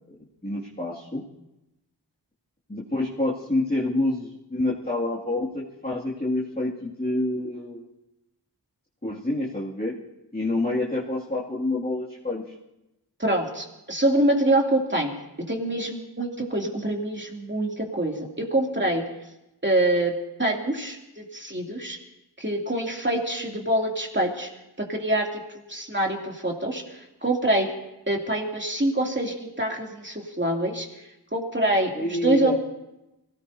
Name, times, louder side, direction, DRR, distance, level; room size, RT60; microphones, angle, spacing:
voice 1, 0.4-1.2 2.7-7.8 9.0-9.9 10.3-12.4 31.9-32.6, left 2 dB, 20° left, -6 dB, 2.4 m, -27 dB
voice 2, 13.2-15.1 15.5-19.0 19.6-20.1 20.4-22.0 22.4-24.5 24.8-27.7 28.1-30.9 31.3-32.5, right 1 dB, 25° right, 0 dB, 2.7 m, -25 dB
24.5 x 18.0 x 2.8 m, 0.93 s
wide cardioid pair, 40°, 42 cm